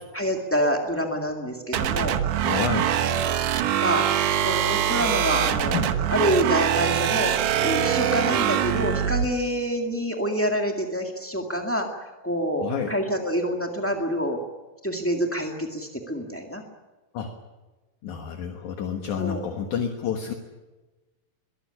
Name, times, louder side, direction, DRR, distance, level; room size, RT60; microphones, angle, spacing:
voice 1, 0.1-2.2 3.8-4.0 4.4-5.8 6.1-7.3 7.6-14.4 14.8-16.6 19.2-19.4, equal, 15° left, 2 dB, 0.4 m, -27 dB
sound 1, 1.7-9.3, right 10 dB, 70° right, 2.4 m, -23 dB
voice 2, 2.3-3.0 5.7-5.9 12.6-12.9 17.1-17.3 18.0-20.3, left 6 dB, 60° left, 4 dB, 2.7 m, -29 dB
22.5 x 16.0 x 10.0 m, 1.2 s
omnidirectional pair, 4.2 m